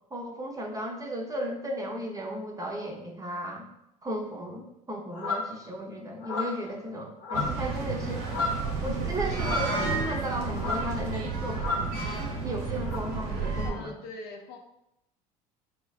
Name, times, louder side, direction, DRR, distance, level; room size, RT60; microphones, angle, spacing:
voice 1, 0.1-3.7 4.0-8.3 8.8-12.0 12.4-13.9, equal, 15° right, 1 dB, 0.7 m, -35 dB
sound 1, 5.1-5.5 6.2-6.7 7.2-7.7 8.0-8.7 9.4-10.2 10.5-11.0 11.5-11.9 12.8-13.0, left 3 dB, 85° left, 0.9 m, -32 dB
sound 2, 7.3-13.7, right 4 dB, 70° right, 0.8 m, -31 dB
voice 2, 13.6-14.6, left 3 dB, 55° left, 3 dB, 0.6 m, -41 dB
4.2 x 3.1 x 2.3 m, 0.83 s
hypercardioid pair, 70°, 20 cm